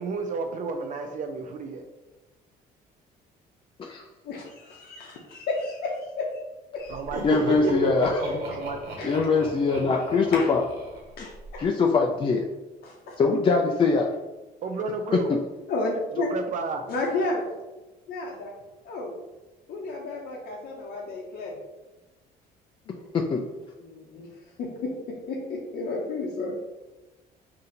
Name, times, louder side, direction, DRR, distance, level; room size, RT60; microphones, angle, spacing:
voice 1, 0.0-1.9 6.9-7.5 8.4-9.1 14.6-15.4 16.1-16.9, right 4 dB, 50° right, 5 dB, 0.4 m, -32 dB
voice 2, 4.2-6.4 6.7-7.0 9.0-9.1 10.3-10.4 11.2-11.6 12.8-13.2 15.7-16.3 16.9-17.5 18.1-18.5 18.8-19.1 19.7-21.6 22.9-23.1 23.8-24.3 24.6-26.7, left 2 dB, 65° left, -2 dB, 0.7 m, -32 dB
Laughter, 6.9-11.5, right 2 dB, 85° right, 1.2 m, -32 dB
voice 3, 7.2-8.4 9.0-10.6 11.6-12.5 13.2-14.1 15.1-15.4 23.1-23.4, left 4 dB, 30° left, 1 dB, 0.4 m, -22 dB
4.1 x 2.7 x 3.8 m, 1.1 s
cardioid pair, 110°, 17 cm